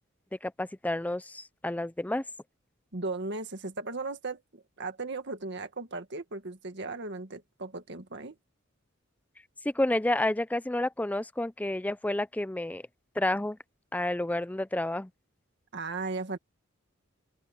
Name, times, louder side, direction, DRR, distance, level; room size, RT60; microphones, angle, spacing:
voice 1, 0.4-2.2 9.6-12.9 13.2-13.6 13.9-15.1, left 1 dB, 10° left, 0.4 m, -30 dB
voice 2, 2.9-8.4 15.7-16.4, right 3 dB, 60° right, 1.8 m, -36 dB
open air
head